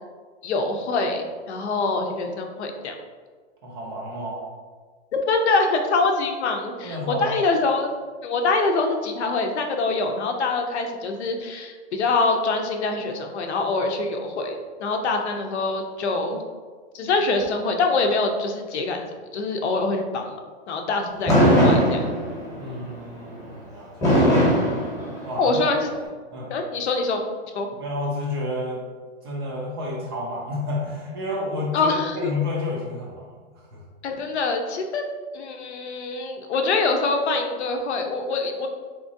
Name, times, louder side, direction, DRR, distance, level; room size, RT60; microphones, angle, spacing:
voice 1, 0.4-2.9 5.3-7.9 8.2-16.4 16.9-20.3 20.7-22.1 25.4-25.9 26.5-27.2 27.5-27.7 31.7-32.3 34.0-35.0 35.3-38.7, left 3 dB, 80° left, 4 dB, 0.7 m, -24 dB
voice 2, 3.6-4.4 6.8-7.4 22.6-24.1 25.2-25.6 26.3-26.5 27.8-28.8 29.2-33.3 33.7-33.8, left 2 dB, 25° right, -2 dB, 0.4 m, -30 dB
Fireworks, 21.3-22.6 24.0-25.6, equal, 10° left, 0.9 m, -18 dB
3.7 x 3.0 x 2.6 m, 1.5 s
hypercardioid pair, 155°, 33 cm